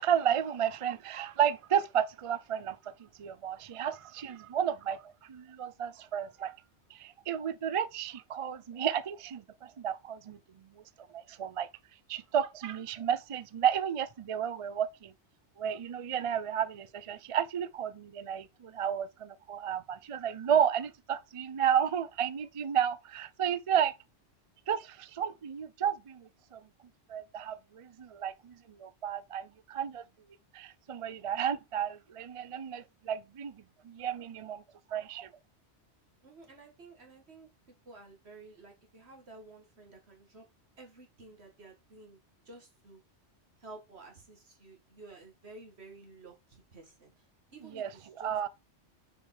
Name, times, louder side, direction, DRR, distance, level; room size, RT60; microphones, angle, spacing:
voice 1, 0.0-2.9 3.2-6.6 6.9-10.4 11.0-11.7 12.1-15.1 15.6-23.9 24.7-26.6 27.1-30.0 30.5-33.6 33.8-34.6 34.9-35.3 47.7-47.9 48.2-48.5, right 9 dB, 50° right, 0.4 m, -32 dB
voice 2, 36.2-40.5 40.8-43.0 43.6-47.3 47.5-48.5, right 3 dB, 65° right, 2.3 m, -52 dB
6.9 x 4.9 x 4.4 m
omnidirectional pair, 1.2 m